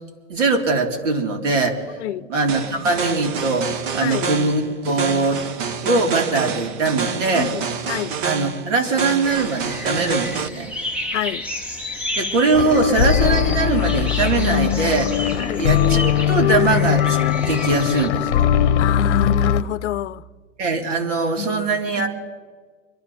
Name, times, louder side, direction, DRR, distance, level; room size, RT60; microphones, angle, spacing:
voice 1, 0.3-1.9 2.3-5.4 5.8-7.5 8.2-10.7 12.2-15.2 15.5-18.5 20.6-22.1, right 3 dB, 70° right, 3.7 m, -21 dB
sound 1, 2.5-10.5, right 6 dB, 40° right, 1.1 m, -28 dB
voice 2, 4.0-4.3 7.3-8.2 11.1-11.4 15.4-15.7 18.8-20.2 21.4-21.6, left 13 dB, 65° left, 0.7 m, -27 dB
sound 2, 9.2-18.1, left 1 dB, 5° right, 0.6 m, -31 dB
sound 3, 12.5-19.6, left 10 dB, 45° left, 1.0 m, -20 dB
26.0 x 12.5 x 4.3 m
hypercardioid pair, 155°, 38 cm